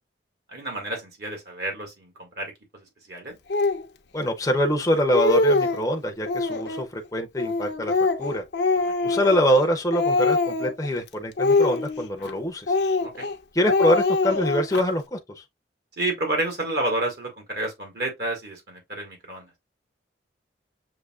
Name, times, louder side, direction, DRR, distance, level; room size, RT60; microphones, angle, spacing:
voice 1, 0.5-2.5 3.1-3.4 8.9-9.1 13.0-13.3 16.0-19.5, right 2 dB, 60° right, 1.7 m, -30 dB
Speech, 3.5-3.8 4.6-4.7 5.0-5.9 6.3-6.9 7.4-9.7 9.9-10.9 11.4-12.3 12.7-13.3 13.7-14.8, left 3 dB, 65° left, 0.6 m, -23 dB
voice 2, 4.1-7.9 8.2-8.4 9.0-12.7 13.5-15.4, equal, 20° left, 0.6 m, -24 dB
6.6 x 2.8 x 2.4 m
head